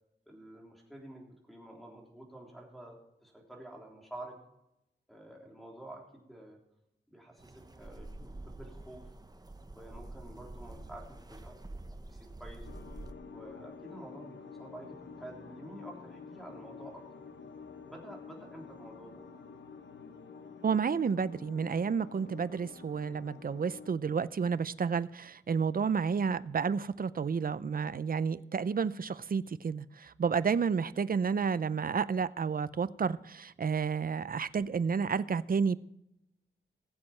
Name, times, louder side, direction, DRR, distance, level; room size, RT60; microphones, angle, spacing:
voice 1, 0.3-4.4 5.1-6.6 7.1-9.1 9.8-11.6 12.1-12.7 13.3-17.2 17.9-19.2, right 1 dB, ahead, 3.5 m, -49 dB
sound 1, 7.4-13.1, right 2 dB, 20° right, 0.9 m, -47 dB
sound 2, 12.6-23.9, left 5 dB, 65° left, 1.1 m, -49 dB
voice 2, 20.6-35.8, right 6 dB, 45° right, 0.5 m, -31 dB
19.5 x 7.6 x 4.3 m
wide cardioid pair, 120°, 20 cm